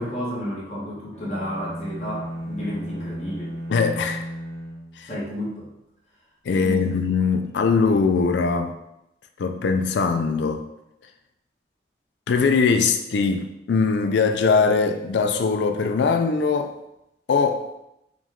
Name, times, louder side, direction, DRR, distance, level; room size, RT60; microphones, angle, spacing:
voice 1, 0.0-3.6 5.0-5.7 6.6-7.0, equal, 40° left, -6 dB, 1.2 m, -31 dB
sound 1, 1.1-5.5, equal, 75° right, 1.3 m, -35 dB
voice 2, 3.7-4.2 5.0-5.1 6.5-8.7 9.4-10.6 12.3-16.7 17.3-17.7, left 5 dB, 85° left, 6 dB, 0.4 m, -21 dB
5.0 x 2.3 x 3.6 m, 0.85 s
head